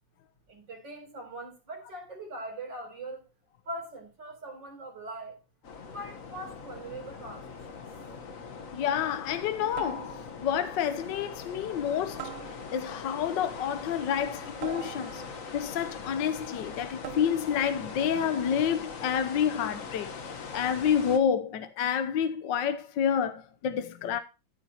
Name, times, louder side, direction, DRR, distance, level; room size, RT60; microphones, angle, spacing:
voice 1, 0.5-3.3 3.7-5.4 5.8-7.8, right 1 dB, 60° right, 4.7 m, -41 dB
sound 1, 5.6-21.2, left 5 dB, 45° left, 1.5 m, -42 dB
sound 2, 8.0-8.3 9.8-10.5 12.2-13.0 14.6-15.5 17.0-17.6, right 11 dB, 85° right, 1.7 m, -43 dB
voice 2, 8.7-12.3 12.7-15.2 15.5-24.2, left 8 dB, 70° left, 1.5 m, -29 dB
14.5 x 8.2 x 2.9 m
omnidirectional pair, 2.2 m